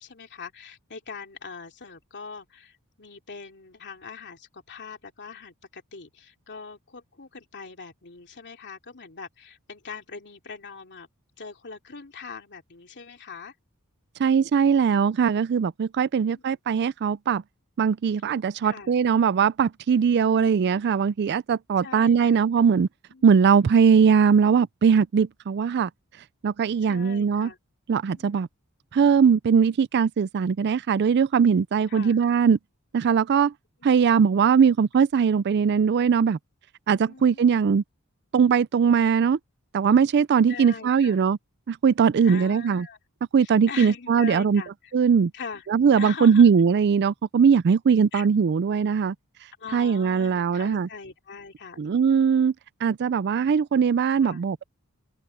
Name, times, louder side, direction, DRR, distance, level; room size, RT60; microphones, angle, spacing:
voice 1, 0.0-11.1 11.4-13.5 16.2-16.4 18.6-18.9 20.3-20.5 21.8-22.4 23.1-23.3 26.8-27.6 28.1-28.5 31.9-32.2 37.0-37.6 40.5-41.2 42.2-43.0 43.4-44.9 45.3-45.7 46.0-46.5 48.1-48.3 49.6-52.3 54.2-54.4, left 5 dB, 50° left, 3.0 m, -42 dB
voice 2, 14.2-17.4 17.8-22.9 23.2-25.9 26.4-27.5 27.9-28.5 28.9-32.6 32.9-33.5 33.8-36.4 36.9-37.8 38.3-39.4 39.7-41.4 41.7-42.9 43.3-44.6 44.9-45.3 45.7-49.1 49.7-50.9 51.8-52.5 52.8-54.6, right 6 dB, 50° right, 0.4 m, -20 dB
open air
head